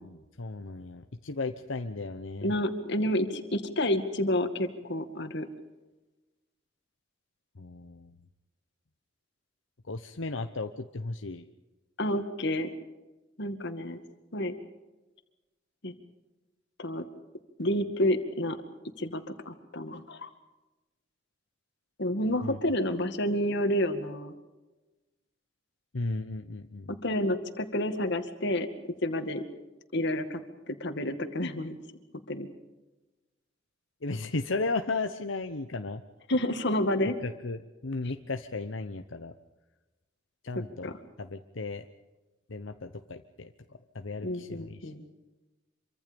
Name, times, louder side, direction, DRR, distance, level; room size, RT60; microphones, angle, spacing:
voice 1, 0.0-2.5 7.6-8.1 9.9-11.5 22.4-22.6 25.9-26.9 34.0-36.0 37.2-39.3 40.4-40.9 41.2-41.8 42.5-43.5 43.9-44.9, left 3 dB, 85° left, 7 dB, 1.0 m, -35 dB
voice 2, 2.4-5.5 12.0-12.7 13.4-14.0 14.3-14.5 15.8-15.9 16.8-17.0 17.6-18.6 19.0-20.3 22.0-24.3 26.9-28.7 29.0-29.4 29.9-30.4 30.7-31.8 32.3-32.5 36.3-37.2 40.8-40.9 44.2-45.0, left 1 dB, 65° left, 8 dB, 2.2 m, -29 dB
26.5 x 24.5 x 5.3 m, 1.1 s
head